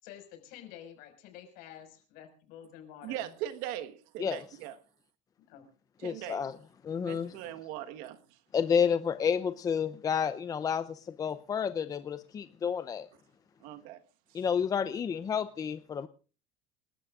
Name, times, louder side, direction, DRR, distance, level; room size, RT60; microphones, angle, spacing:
voice 1, 0.0-3.3 5.5-5.6, left 10 dB, 65° left, 5.5 m, -49 dB
voice 2, 3.0-4.7 6.0-6.5 7.0-8.4 13.6-14.0 14.3-14.4, right 12 dB, 70° right, 1.4 m, -40 dB
voice 3, 6.0-6.5 6.8-7.3 8.5-13.1 14.3-16.1, left 7 dB, 25° left, 0.6 m, -30 dB
28.5 x 12.5 x 2.5 m
cardioid pair, 145°, 16 cm